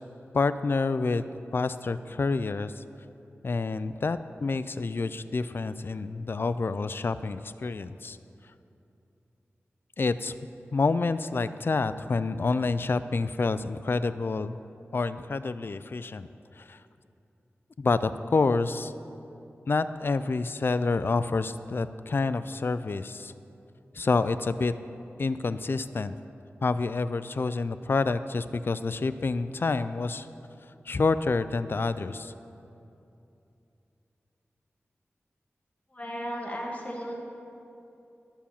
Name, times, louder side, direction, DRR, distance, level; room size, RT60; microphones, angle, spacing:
voice 1, 0.3-1.2 1.5-2.8 3.4-8.2 10.0-10.3 10.7-14.6 14.9-16.3 16.6-16.8 17.8-18.9 19.7-23.3 23.9-24.7 25.2-26.2 26.6-30.3 30.9-32.3, left 3 dB, 50° left, 13 dB, 0.4 m, -28 dB
voice 2, 35.9-37.2, equal, 30° left, -2 dB, 1.8 m, -35 dB
11.5 x 7.2 x 7.1 m, 2.7 s
wide cardioid pair, 60°, 5 cm